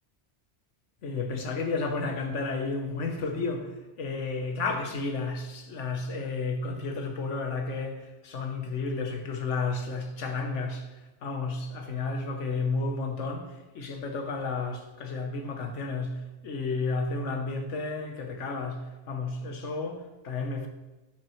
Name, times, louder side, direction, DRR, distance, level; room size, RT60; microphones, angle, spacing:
voice 1, 1.0-3.7 4.0-10.8 11.2-13.4 13.7-16.2 16.4-18.8 19.1-20.7, left 3 dB, 80° left, 1.3 m, -32 dB
9.4 x 6.0 x 3.1 m
omnidirectional pair, 1.2 m